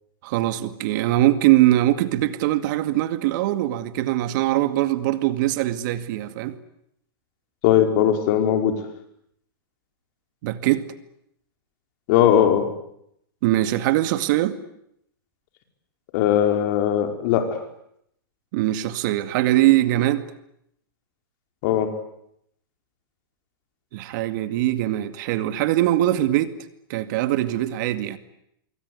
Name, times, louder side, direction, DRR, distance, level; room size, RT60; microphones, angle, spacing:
voice 1, 0.2-6.6 10.4-10.9 13.4-14.6 18.5-20.3 23.9-26.6 26.9-28.2, right 15 dB, 55° right, 2.2 m, -22 dB
voice 2, 7.6-8.7 12.1-12.7 16.1-17.6 21.6-21.9, left 10 dB, 50° left, 5.1 m, -19 dB
25.5 x 23.5 x 9.7 m
hypercardioid pair, 130°, 12 cm